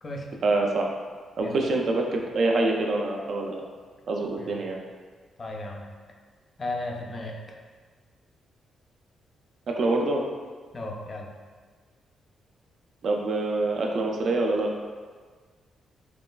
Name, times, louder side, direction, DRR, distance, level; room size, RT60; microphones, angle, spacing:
voice 1, 0.4-0.9 1.4-3.6 4.1-4.8 9.7-10.2 13.0-14.7, right 2 dB, 60° right, 1 dB, 0.3 m, -25 dB
voice 2, 5.4-5.8 6.6-7.6 10.7-11.3, left 2 dB, 35° left, 1 dB, 0.3 m, -35 dB
2.9 x 2.3 x 2.2 m, 1.5 s
cardioid pair, 115°, 0 cm